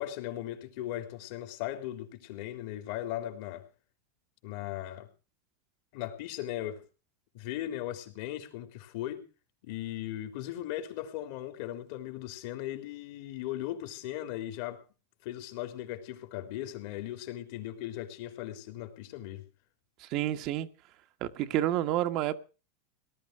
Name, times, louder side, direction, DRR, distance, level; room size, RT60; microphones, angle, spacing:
voice 1, 0.0-3.7 4.4-5.1 5.9-6.8 7.3-9.2 9.6-14.8 15.2-19.4, left 13 dB, 65° left, 3.7 m, -38 dB
voice 2, 20.0-20.7 21.2-22.4, right 13 dB, 50° right, 1.5 m, -29 dB
18.5 x 11.5 x 4.8 m
hypercardioid pair, 115°, 0 cm